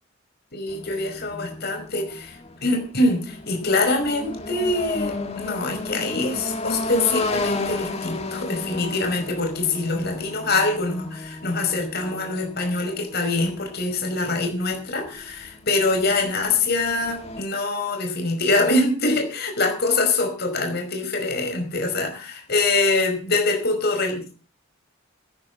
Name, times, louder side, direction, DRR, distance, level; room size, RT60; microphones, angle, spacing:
voice 1, 0.5-2.3 2.6-24.3, left 2 dB, 50° left, 4 dB, 5.3 m, -24 dB
sound 1, 0.7-17.4, left 2 dB, 30° left, 2.1 m, -33 dB
13.5 x 11.0 x 6.3 m, 0.37 s
head